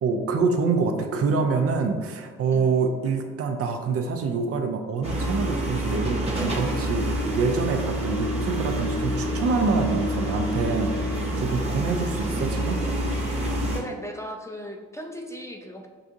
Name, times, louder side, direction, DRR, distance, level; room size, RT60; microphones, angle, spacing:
voice 1, 0.0-10.9 11.4-12.8, right 4 dB, 50° right, 5 dB, 0.6 m, -26 dB
sound 1, 5.0-13.8, equal, 20° right, 1.1 m, -27 dB
voice 2, 13.5-15.9, equal, 10° left, 2 dB, 0.4 m, -37 dB
5.7 x 2.5 x 2.5 m, 1.5 s
hypercardioid pair, 65°, 30 cm